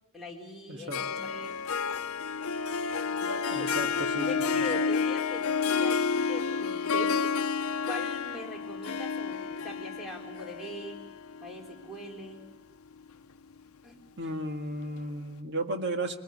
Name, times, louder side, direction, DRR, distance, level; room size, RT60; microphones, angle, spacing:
voice 1, 0.1-1.6 2.9-4.0 4.3-7.3 7.8-11.0 11.4-12.5 13.8-14.0 14.2-14.3, left 1 dB, ahead, -1 dB, 4.3 m, -41 dB
voice 2, 0.7-1.0 3.5-4.3 14.2-16.2, right 1 dB, 55° right, 5 dB, 1.8 m, -34 dB
Harp, 0.9-12.3, left 5 dB, 85° left, 0.7 m, -30 dB
22.5 x 20.0 x 8.5 m, 1.1 s
head